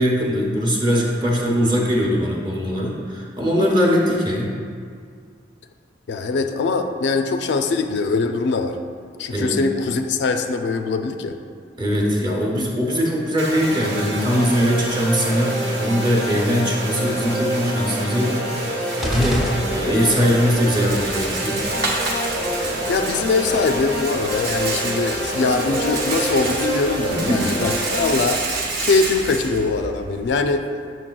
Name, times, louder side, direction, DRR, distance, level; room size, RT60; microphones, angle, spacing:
voice 1, 0.0-4.5 9.3-9.6 11.8-21.6 27.1-27.6, equal, 25° right, -1 dB, 0.8 m, -21 dB
voice 2, 6.1-8.8 9.2-11.4 22.9-28.4 28.8-30.6, left 4 dB, 65° left, 6 dB, 0.3 m, -22 dB
sound 1, 13.4-28.1, right 1 dB, 75° right, 1.1 m, -27 dB
sound 2, 19.0-20.3, equal, ahead, 0.5 m, -27 dB
Rattle, 19.3-30.4, right 3 dB, 55° right, 0.7 m, -29 dB
7.4 x 6.3 x 2.3 m, 2.1 s
head